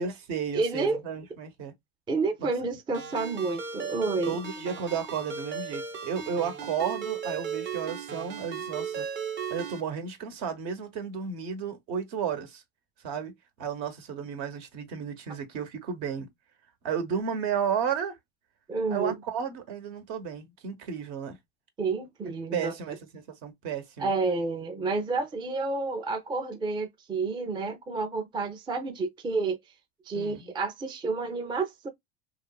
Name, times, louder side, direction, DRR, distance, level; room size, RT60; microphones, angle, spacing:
voice 1, 0.0-1.7 2.4-2.5 4.3-9.1 9.5-12.6 13.0-16.3 16.8-18.2 18.9-21.4 22.5-24.1 30.1-30.5, right 7 dB, 65° right, 1.0 m, -33 dB
voice 2, 0.5-1.0 2.1-4.4 18.7-19.2 21.8-22.7 24.0-29.6 30.1-31.9, right 3 dB, 15° right, 0.4 m, -30 dB
Ringtone, 2.9-9.8, right 6 dB, 35° right, 0.8 m, -36 dB
2.9 x 2.3 x 2.2 m
supercardioid pair, 105°, 32 cm